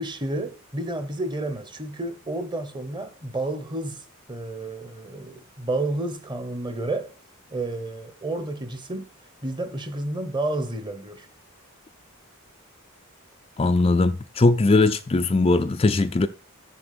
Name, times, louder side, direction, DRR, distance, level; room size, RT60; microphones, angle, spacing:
voice 1, 0.0-7.1 7.5-9.1 9.4-11.3, right 2 dB, 20° right, 1.1 m, -30 dB
voice 2, 13.6-16.3, left 3 dB, 25° left, 0.4 m, -20 dB
7.2 x 6.9 x 6.8 m
head